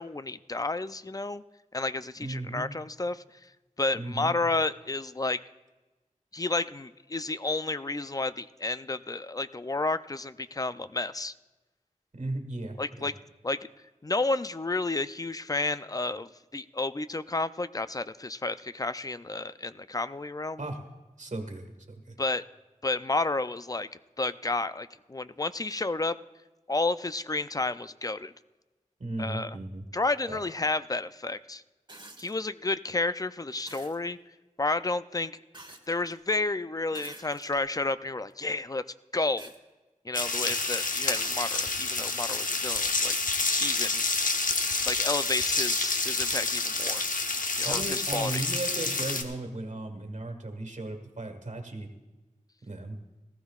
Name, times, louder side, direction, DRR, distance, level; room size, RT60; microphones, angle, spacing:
voice 1, 0.0-1.4 1.7-3.2 3.8-5.4 6.3-11.3 12.8-13.1 13.4-13.6 14.0-20.6 22.2-22.4 22.8-23.9 24.2-26.2 26.7-28.3 29.2-29.6 29.9-31.6 32.2-34.2 34.6-35.3 35.9-38.8 39.1-39.5 40.1-43.1 43.6-44.0 44.9-47.0 47.6-48.4, left 2 dB, 25° left, 13 dB, 0.4 m, -31 dB
voice 2, 2.2-2.7 3.9-4.3 12.1-13.1 20.6-20.8 21.2-22.2 29.0-29.9 30.3-30.4 40.5-40.7 47.6-51.9 52.7-53.0, right 2 dB, 70° right, 5 dB, 1.6 m, -36 dB
sound 1, 31.9-32.4 33.7-34.0 35.5-36.2 36.9-37.7 38.3-38.4 39.4-39.6 41.0-41.1, right 2 dB, 35° right, 1.2 m, -48 dB
sound 2, 40.1-49.2, left 3 dB, 85° left, 0.9 m, -28 dB
19.0 x 14.5 x 2.4 m, 1.1 s
wide cardioid pair, 60°, 13 cm